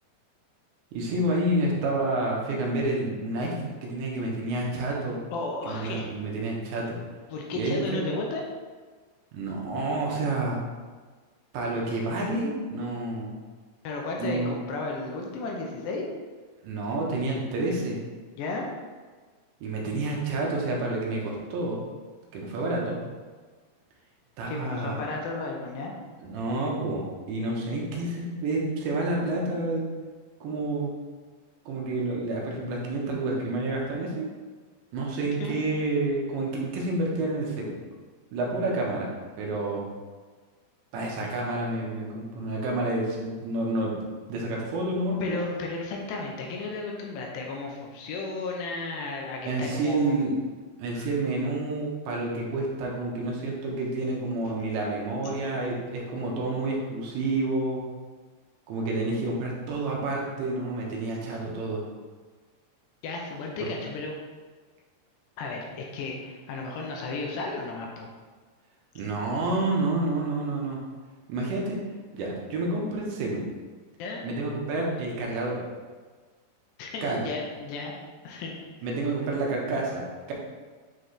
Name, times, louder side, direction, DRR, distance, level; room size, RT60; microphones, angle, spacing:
voice 1, 0.9-5.2 5.7-7.0 7.5-8.2 9.3-10.6 11.5-13.4 14.2-14.6 16.6-18.0 19.6-21.8 22.3-23.0 24.4-25.1 26.2-29.8 30.4-30.9 31.7-34.3 34.9-37.7 38.3-39.1 39.3-39.8 40.9-43.9 44.3-45.4 49.5-50.4 50.8-57.9 58.7-61.8 63.6-63.7 69.0-70.8 71.3-71.8 72.1-73.4 74.2-75.6 77.0-77.3 78.8-80.3, right 2 dB, 85° right, -2 dB, 3.3 m, -29 dB
voice 2, 5.3-6.1 7.3-8.4 13.8-16.1 18.4-18.7 24.5-25.9 35.4-35.5 45.2-50.2 50.9-51.1 63.0-64.2 65.4-68.1 74.0-74.2 76.8-77.9 78.2-78.5, left 3 dB, 80° left, 0 dB, 2.7 m, -34 dB
8.8 x 4.1 x 3.3 m, 1.4 s
omnidirectional pair, 5.2 m